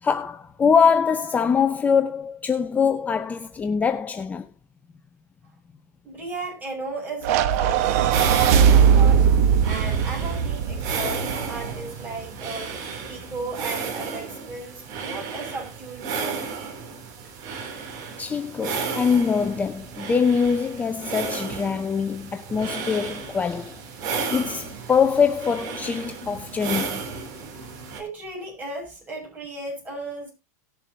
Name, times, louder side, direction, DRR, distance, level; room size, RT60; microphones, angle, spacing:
voice 1, 0.0-4.5 18.2-27.0, left 6 dB, 15° left, 0.7 m, -23 dB
voice 2, 6.0-9.3 9.6-12.8 13.1-16.4 28.0-30.3, right 3 dB, 20° right, 6.8 m, -35 dB
sound 1, 7.2-11.7, right 8 dB, 65° right, 1.0 m, -19 dB
sound 2, 8.1-28.0, right 5 dB, 50° right, 3.3 m, -33 dB
18.5 x 7.1 x 2.8 m
supercardioid pair, 120°, 9 cm